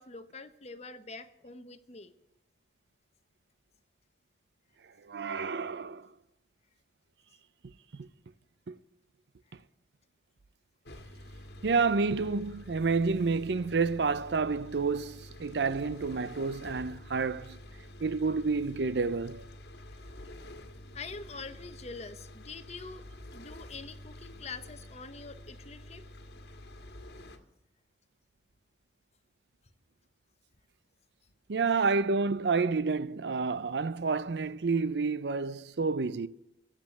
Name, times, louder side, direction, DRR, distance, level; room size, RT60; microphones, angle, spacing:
voice 1, 0.0-2.1 20.9-26.1, left 4 dB, 40° left, 1.0 m, -45 dB
voice 2, 5.1-6.1 8.0-8.1 8.7-8.8 11.6-17.6 18.0-19.4 31.5-36.3, right 4 dB, 70° right, 0.5 m, -29 dB
sound 1, 10.8-27.4, left 1 dB, 70° left, 1.7 m, -48 dB
15.0 x 7.5 x 8.2 m
head